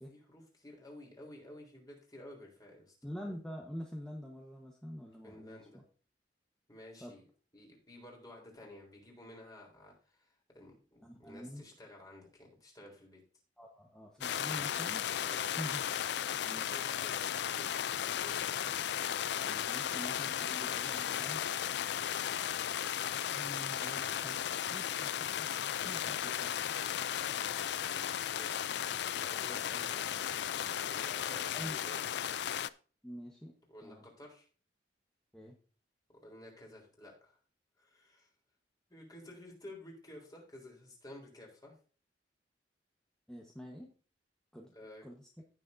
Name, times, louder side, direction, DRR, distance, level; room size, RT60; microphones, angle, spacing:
voice 1, 0.1-3.0 5.2-5.8 6.7-7.2 7.5-13.2 15.2-15.8 16.3-17.3 17.5-17.7 18.2-18.4 27.5-27.9 28.3-28.6 29.1-32.0 33.7-34.5 36.2-37.4 37.8-38.3 38.9-41.7 44.7-45.0, left 1 dB, 20° left, -1 dB, 3.6 m, -53 dB
voice 2, 3.0-5.8 7.0-7.2 11.0-11.6 13.6-15.1 15.6-15.8 16.4-16.8 19.4-21.7 23.3-24.4 24.7-25.5 25.8-26.7 31.5-31.9 33.0-33.5 33.8-34.0 35.3-35.6 43.3-43.9 44.5-44.7 45.0-45.3, equal, 5° left, -1 dB, 1.2 m, -46 dB
sound 1, 14.2-32.7, left 10 dB, 65° left, 0.4 m, -35 dB
16.0 x 6.5 x 2.7 m, 0.37 s
head